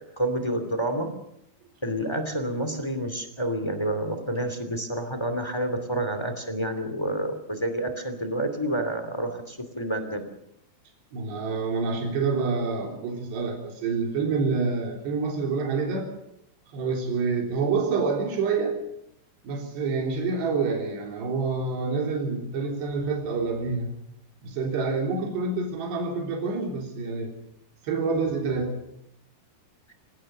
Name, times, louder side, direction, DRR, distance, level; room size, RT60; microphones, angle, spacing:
voice 1, 0.1-1.1 1.8-10.2, right 1 dB, 10° left, 7 dB, 1.6 m, -29 dB
voice 2, 11.1-16.1 16.7-18.8 19.4-23.9 24.4-27.3 27.8-28.8, right 4 dB, 75° right, 1 dB, 5.7 m, -27 dB
26.0 x 18.0 x 6.7 m, 0.79 s
omnidirectional pair, 4.8 m